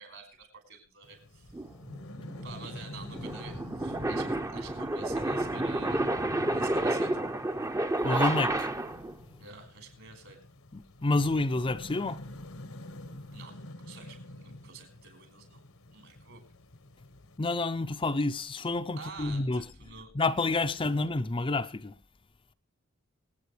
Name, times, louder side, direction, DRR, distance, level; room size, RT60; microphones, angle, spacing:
voice 1, 0.0-1.5 2.4-6.1 6.5-7.2 9.4-10.4 13.3-15.6 15.9-16.4 19.0-20.1 20.7-20.9, right 4 dB, 70° right, 5.3 m, -49 dB
sound 1, 1.0-17.4, left 1 dB, 80° left, 1.3 m, -47 dB
sound 2, 1.5-9.1, right 2 dB, 15° right, 0.7 m, -30 dB
voice 2, 8.0-8.7 10.7-12.2 17.4-19.6 20.1-22.0, left 2 dB, 25° left, 0.6 m, -29 dB
25.5 x 8.9 x 3.3 m
head